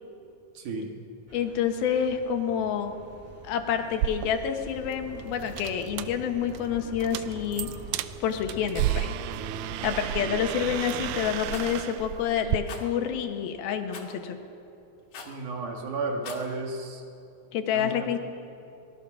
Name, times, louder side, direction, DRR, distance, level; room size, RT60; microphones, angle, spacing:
voice 1, 0.5-0.9 7.6-7.7 15.3-17.0 17.7-18.1, right 3 dB, 60° right, 2 dB, 3.4 m, -33 dB
voice 2, 1.3-3.0 3.4-7.7 8.2-9.1 9.8-14.4 17.5-18.2, left 8 dB, 85° left, 5 dB, 3.2 m, -28 dB
sound 1, 1.3-11.4, right 1 dB, 5° right, 1.4 m, -45 dB
sound 2, 3.9-12.6, right 13 dB, 80° right, 1.8 m, -33 dB
Rattle, 11.5-11.7 12.7-12.8 13.9-14.1 15.1-15.4 16.1-16.5, left 5 dB, 65° left, 3.6 m, -41 dB
25.0 x 20.0 x 6.3 m, 2.7 s
omnidirectional pair, 4.2 m